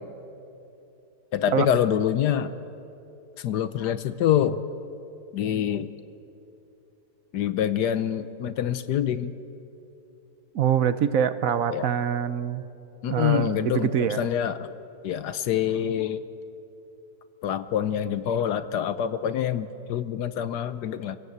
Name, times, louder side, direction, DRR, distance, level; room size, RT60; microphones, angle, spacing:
voice 1, 1.3-2.5 3.4-4.6 5.3-5.9 7.3-9.3 11.7-11.9 13.0-14.7 15.0-16.2 17.4-21.2, left 9 dB, 70° left, 13 dB, 1.3 m, -26 dB
voice 2, 10.5-12.6 13.1-14.3, right 8 dB, 60° right, 12 dB, 1.0 m, -24 dB
27.0 x 16.5 x 8.1 m, 2.8 s
omnidirectional pair, 1.9 m